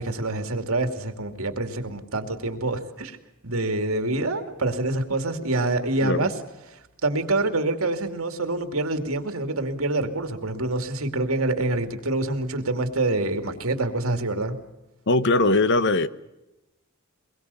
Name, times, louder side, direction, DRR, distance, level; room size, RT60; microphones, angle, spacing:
voice 1, 0.0-3.2 3.4-6.3 7.0-14.6, right 2 dB, 80° right, 2.6 m, -26 dB
voice 2, 15.1-16.1, left 2 dB, 55° left, 1.1 m, -20 dB
23.5 x 22.5 x 7.0 m
head